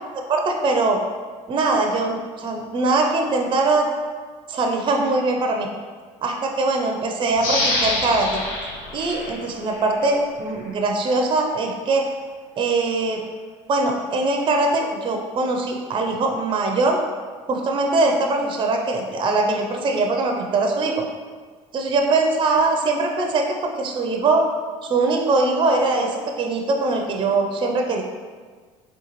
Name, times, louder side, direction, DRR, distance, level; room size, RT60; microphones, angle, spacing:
voice 1, 0.0-1.0 1.5-3.9 4.5-5.7 6.2-8.4 8.9-12.1 12.6-13.2 13.7-17.0 17.5-21.0 21.7-24.5 24.8-28.0, right 3 dB, 30° right, 3 dB, 0.5 m, -22 dB
sound 1, 7.4-10.1 10.5-10.6, left 2 dB, 70° left, 0.7 m, -26 dB
3.8 x 2.3 x 2.9 m, 1.5 s
hypercardioid pair, 70°, 16 cm